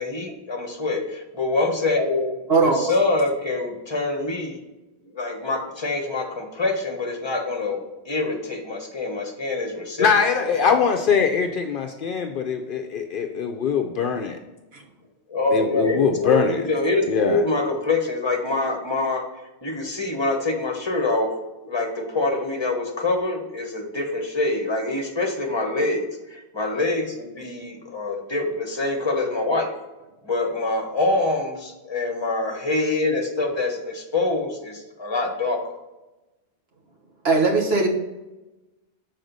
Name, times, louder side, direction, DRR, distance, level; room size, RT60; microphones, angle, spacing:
voice 1, 0.0-4.6 5.1-10.1 10.6-10.8 15.3-19.2 19.6-21.3 21.6-29.7 30.2-35.7, left 2 dB, 25° left, 2 dB, 1.1 m, -25 dB
voice 2, 2.5-2.9 14.7-14.8 37.2-37.9, right 4 dB, 75° right, 0 dB, 1.4 m, -19 dB
voice 3, 10.0-14.4 15.5-16.6 17.1-17.4, left 6 dB, 60° left, 5 dB, 0.7 m, -22 dB
6.4 x 4.2 x 3.9 m, 1.1 s
omnidirectional pair, 1.1 m